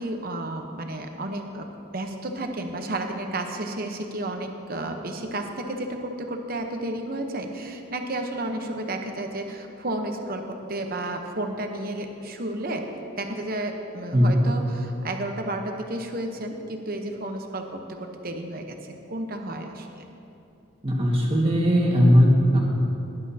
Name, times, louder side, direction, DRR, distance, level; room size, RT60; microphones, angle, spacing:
voice 1, 0.0-1.7 1.9-12.8 13.2-20.1, right 1 dB, 45° right, 4 dB, 0.9 m, -32 dB
voice 2, 20.8-22.6, equal, 25° right, -2 dB, 1.7 m, -18 dB
18.0 x 11.0 x 2.8 m, 2.8 s
head